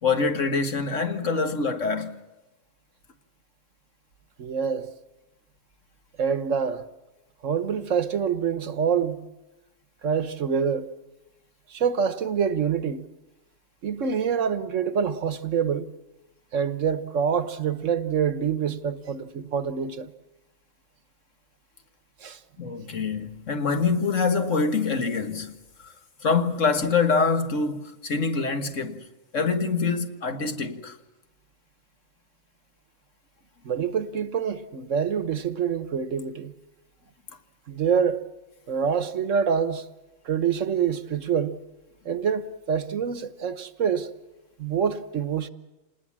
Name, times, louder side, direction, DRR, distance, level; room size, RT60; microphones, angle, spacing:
voice 1, 0.0-2.2 22.6-25.5 25.8-25.9 26.2-29.1 29.3-31.0, left 4 dB, 60° left, 1.8 m, -25 dB
voice 2, 4.4-4.9 6.2-6.8 7.4-9.2 10.0-10.9 11.7-13.1 13.8-15.9 16.5-20.1 22.2-22.4 33.6-36.5 37.7-38.2 38.7-39.9 40.2-41.6 42.0-44.1 44.6-45.5, right 7 dB, 65° right, 1.3 m, -26 dB
27.5 x 20.0 x 7.4 m
omnidirectional pair, 1.5 m